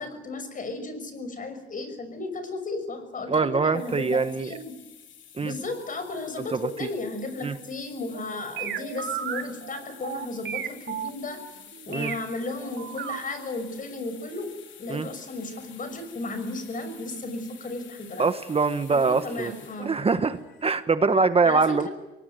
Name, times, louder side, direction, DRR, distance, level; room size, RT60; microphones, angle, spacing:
voice 1, 0.0-4.7 5.4-11.4 11.9-14.5 14.8-18.3 19.0-19.9 21.4-21.9, left 2 dB, 40° left, 10 dB, 6.0 m, -34 dB
voice 2, 3.3-4.5 5.4-5.5 6.5-6.6 7.4-7.6 11.9-12.1 14.9-15.1 18.2-19.5 19.8-21.9, right 4 dB, 30° right, 10 dB, 1.2 m, -23 dB
sound 1, 3.7-20.8, left 8 dB, 70° left, 3.8 m, -50 dB
sound 2, 8.1-12.2 12.6-13.2 13.6-13.7, right 9 dB, 65° right, 2.8 m, -34 dB
24.5 x 19.0 x 9.3 m, 1.0 s
cardioid pair, 90°, 20 cm